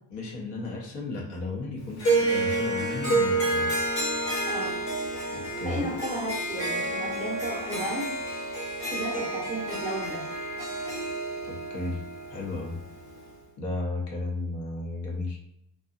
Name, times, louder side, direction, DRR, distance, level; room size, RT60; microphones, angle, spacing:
voice 1, 0.1-3.8 5.3-5.9 11.5-12.0 12.3-12.8 13.6-15.4, left 3 dB, 55° left, -2 dB, 0.9 m, -34 dB
Harp, 2.0-13.3, right 2 dB, 35° left, 1.1 m, -29 dB
voice 2, 4.4-4.8 5.6-8.1 8.9-10.2, right 1 dB, 15° right, -6 dB, 0.6 m, -33 dB
2.7 x 2.3 x 2.4 m, 0.73 s
cardioid pair, 150°, 50 cm